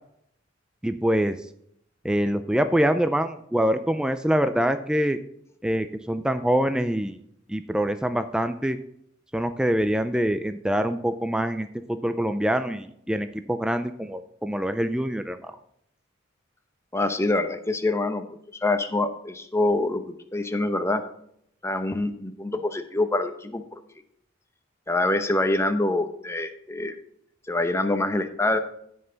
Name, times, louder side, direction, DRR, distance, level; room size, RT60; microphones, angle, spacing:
voice 1, 0.8-1.4 2.0-5.2 5.6-7.2 7.5-8.8 9.3-15.6, equal, 5° right, 9 dB, 0.3 m, -25 dB
voice 2, 16.9-18.2 18.5-20.0 20.3-21.0 21.6-23.8 24.9-26.9 27.5-28.6, left 2 dB, 15° left, 7 dB, 0.8 m, -25 dB
15.5 x 5.5 x 3.9 m, 0.72 s
head